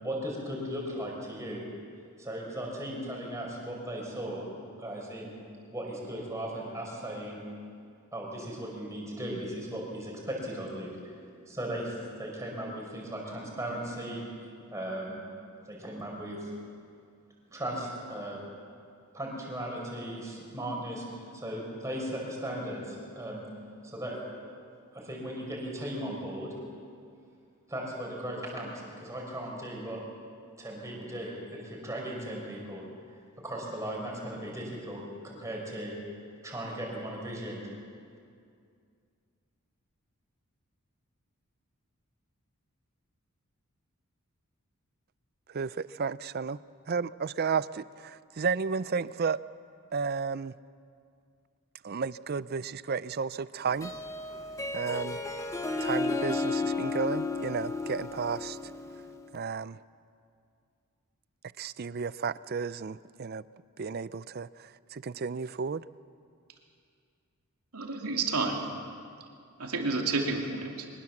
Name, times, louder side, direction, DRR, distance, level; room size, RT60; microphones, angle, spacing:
voice 1, 0.0-1.6 2.2-5.3 5.7-7.4 8.1-11.0 11.5-14.2 14.7-15.2 15.7-16.5 17.5-18.4 19.1-21.0 21.3-23.4 23.8-24.2 24.9-26.6 27.7-30.0 30.6-32.9 33.4-36.0 36.4-37.6, right 1 dB, 15° right, -2 dB, 5.1 m, -37 dB
voice 2, 45.5-46.6 46.9-49.4 49.9-50.5 51.8-53.9 54.7-55.2 55.8-58.6 59.3-59.8 61.6-63.4 63.8-65.8, right 5 dB, 45° right, 17 dB, 0.4 m, -33 dB
Harp, 53.7-59.2, left 3 dB, 15° left, 1.1 m, -33 dB
voice 3, 67.7-68.7 69.6-70.9, right 3 dB, 85° right, 1 dB, 2.9 m, -30 dB
23.5 x 20.5 x 7.3 m, 2.3 s
head